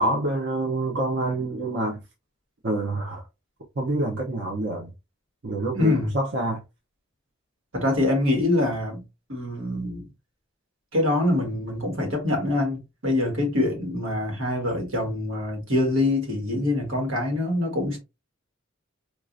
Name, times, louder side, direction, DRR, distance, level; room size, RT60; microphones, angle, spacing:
voice 1, 0.0-2.0 2.6-3.2 3.8-4.9 5.4-6.6, right 2 dB, 60° right, 0.7 m, -26 dB
voice 2, 5.7-6.1 7.7-9.0 9.3-10.1 10.9-18.0, left 2 dB, 90° right, 1.6 m, -24 dB
4.5 x 2.4 x 2.5 m
head